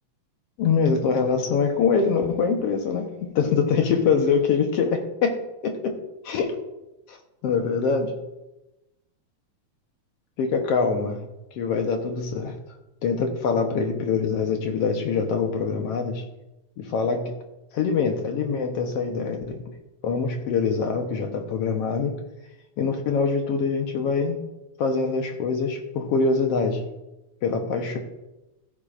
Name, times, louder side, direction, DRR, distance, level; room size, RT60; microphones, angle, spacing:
voice 1, 0.6-6.0 6.2-6.6 7.1-7.2 7.4-8.2 10.4-11.2 11.5-12.6 13.0-16.2 16.8-17.3 17.7-19.7 20.0-22.1 22.8-24.4 24.8-26.8 27.4-28.0, left 5 dB, 65° left, 4 dB, 1.7 m, -24 dB
15.5 x 11.5 x 2.5 m, 0.99 s
omnidirectional pair, 3.4 m